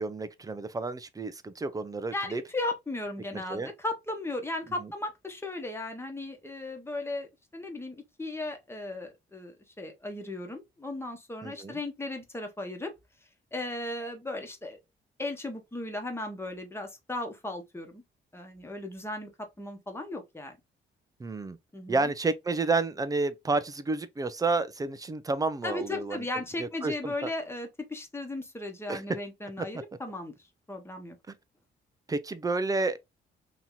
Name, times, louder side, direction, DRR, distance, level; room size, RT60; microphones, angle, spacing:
voice 1, 0.0-2.4 3.3-3.7 4.8-4.9 11.4-11.8 21.2-21.6 21.9-26.2 26.6-27.3 28.9-29.0 29.7-29.8 31.3-31.4 32.1-33.0, right 3 dB, 20° right, 0.5 m, -30 dB
voice 2, 2.1-12.9 13.5-14.8 15.2-18.0 18.3-20.6 21.7-22.1 25.6-30.3 30.7-31.1, left 2 dB, 10° left, 1.1 m, -36 dB
2.9 x 2.8 x 3.8 m
cardioid pair, 90°, 20 cm